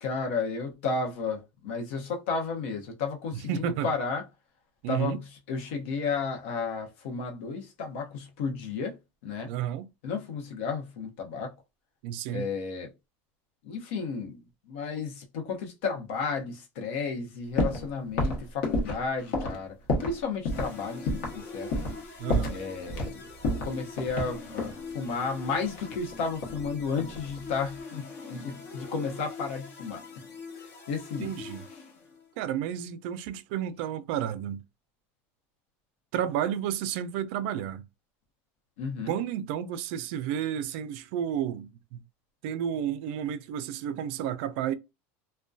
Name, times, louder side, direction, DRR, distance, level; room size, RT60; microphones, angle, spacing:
voice 1, 0.0-4.2 4.9-5.2 5.5-9.0 9.2-9.5 10.0-11.5 12.3-12.9 13.6-14.4 14.7-19.7 20.0-21.7 22.5-30.0 30.6-31.3 38.8-39.1, left 5 dB, 85° left, 0.8 m, -33 dB
voice 2, 3.5-3.9 4.8-5.2 9.5-9.9 12.0-12.5 22.2-22.6 31.2-31.6 32.4-34.6 36.1-37.8 39.1-42.0 42.4-44.7, right 10 dB, 60° right, 0.3 m, -31 dB
sound 1, 17.6-17.9 18.2-20.2 20.5-20.7 21.1-21.4 21.7-22.0 22.3-23.1 23.4-24.8 25.8-26.7 27.0-27.4, left 1 dB, 60° left, 0.9 m, -29 dB
sound 2, 20.5-32.4, left 4 dB, 35° left, 0.7 m, -43 dB
2.5 x 2.1 x 2.3 m
cardioid pair, 170°, 7 cm